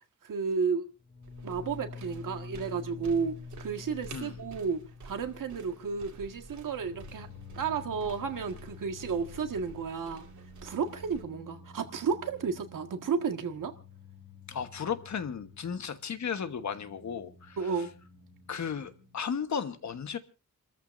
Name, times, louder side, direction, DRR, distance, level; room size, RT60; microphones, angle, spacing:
voice 1, 0.2-0.9 1.4-7.3 7.5-10.2 10.6-13.7 17.6-17.9, right 5 dB, 80° right, 1.8 m, -32 dB
sound 1, 1.0-19.2, left 5 dB, 40° left, 4.3 m, -49 dB
sound 2, 1.2-11.2, right 4 dB, 65° right, 2.3 m, -51 dB
voice 2, 14.5-17.9 18.5-20.2, left 7 dB, 60° left, 1.3 m, -35 dB
29.5 x 14.0 x 2.6 m
wide cardioid pair, 180°, 32 cm